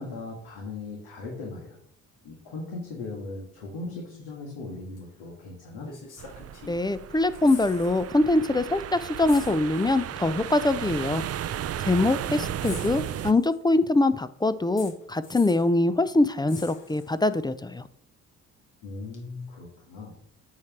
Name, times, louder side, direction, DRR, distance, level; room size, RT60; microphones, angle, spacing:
voice 1, 0.0-1.8 2.2-5.9 12.0-12.9 18.8-20.1, left 3 dB, 80° left, -2 dB, 1.7 m, -38 dB
sound 1, 5.0-5.1 5.8-6.9 7.2-8.1 8.4-8.5 9.3-10.1 11.2-11.3 12.6-13.7 14.8-15.7 16.5-17.4 19.1-19.2, left 4 dB, 55° left, 2.1 m, -45 dB
sound 2, 6.2-13.3, right 10 dB, 45° right, 0.5 m, -34 dB
voice 2, 6.7-11.2 11.9-17.8, left 2 dB, 10° left, 14 dB, 0.4 m, -23 dB
8.5 x 3.2 x 5.9 m, 0.70 s
supercardioid pair, 60°, 35 cm